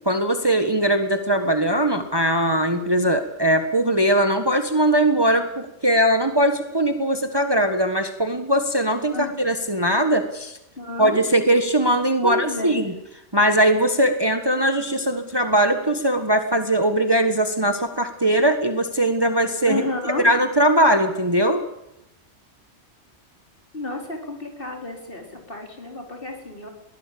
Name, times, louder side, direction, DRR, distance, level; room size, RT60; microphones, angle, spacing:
voice 1, 0.0-10.6 11.0-12.9 13.3-19.8 20.2-21.6, right 1 dB, 20° right, 7 dB, 1.5 m, -20 dB
voice 2, 10.8-11.2 12.2-12.8 19.6-20.3 23.7-26.7, left 2 dB, 45° left, 2 dB, 4.6 m, -31 dB
22.0 x 18.0 x 8.7 m, 0.86 s
omnidirectional pair, 1.3 m